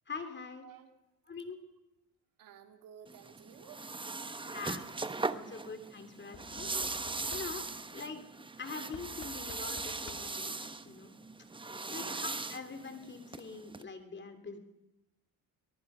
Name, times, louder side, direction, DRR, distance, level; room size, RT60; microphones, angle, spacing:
voice 1, 0.1-0.6 1.3-1.6 4.5-4.8 5.3-6.7 7.3-7.6 7.9-8.2 8.6-11.1 11.9-14.6, left 4 dB, 35° left, 8 dB, 3.0 m, -44 dB
voice 2, 2.4-3.9 4.8-4.9 11.9-12.1, right 9 dB, 75° right, 6 dB, 2.5 m, -54 dB
sound 1, 3.1-13.8, right 3 dB, 15° right, 1.0 m, -40 dB
Knock / Wood, 4.2-4.6 6.3-7.9 8.9-10.5 11.6-11.7 11.9-12.0, left 8 dB, 50° left, 1.8 m, -53 dB
23.5 x 20.5 x 5.6 m, 0.95 s
cardioid pair, 95°, 34 cm